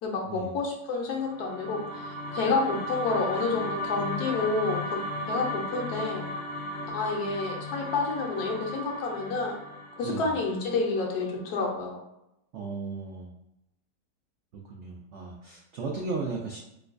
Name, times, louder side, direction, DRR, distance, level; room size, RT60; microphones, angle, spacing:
voice 1, 0.0-5.0 5.3-6.2 6.9-9.6 10.0-12.0, left 3 dB, 70° left, 0 dB, 1.1 m, -29 dB
sound 1, 1.1-11.4, left 1 dB, 10° left, 0.5 m, -35 dB
voice 2, 12.5-13.3 14.7-16.6, right 4 dB, 85° right, -1 dB, 0.6 m, -35 dB
4.5 x 2.2 x 2.4 m, 0.84 s
omnidirectional pair, 1.8 m